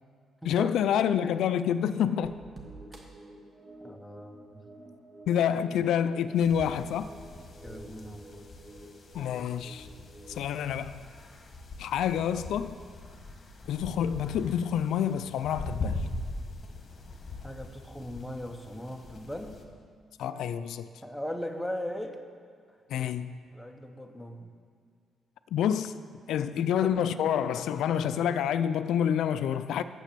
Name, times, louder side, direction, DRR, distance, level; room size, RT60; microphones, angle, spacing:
voice 1, 0.4-2.3 5.3-7.1 9.1-9.9 10.3-11.0 11.8-12.8 13.7-16.0 20.2-20.9 22.9-23.4 25.5-29.8, left 9 dB, 80° left, 12 dB, 0.3 m, -28 dB
sound 1, 2.2-10.6, right 1 dB, 30° right, 1.2 m, -49 dB
voice 2, 3.8-4.7 7.6-8.3 17.4-19.6 21.0-22.2 23.5-24.5 26.4-27.0, equal, ahead, 4 dB, 0.7 m, -39 dB
sound 2, 6.4-19.6, left 2 dB, 35° left, 1.2 m, -41 dB
9.2 x 7.5 x 6.7 m, 2.1 s
cardioid pair, 155°, 0 cm